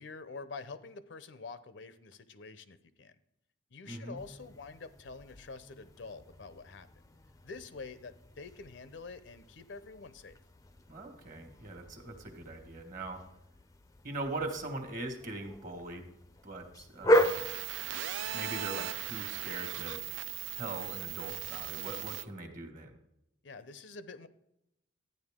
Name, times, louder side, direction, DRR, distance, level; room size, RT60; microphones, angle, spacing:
voice 1, 0.0-3.2 3.7-6.9 7.4-10.4 23.4-24.3, left 4 dB, 65° left, 13 dB, 0.6 m, -47 dB
voice 2, 3.8-4.2 10.9-13.2 14.0-16.1 16.4-17.3 18.3-20.0 20.5-23.0, right 2 dB, 45° right, 6 dB, 1.5 m, -41 dB
sound 1, 4.1-22.1, equal, 15° left, 0.5 m, -37 dB
sound 2, 17.1-22.2, right 12 dB, 70° right, 0.4 m, -38 dB
13.0 x 9.4 x 3.6 m, 0.83 s
head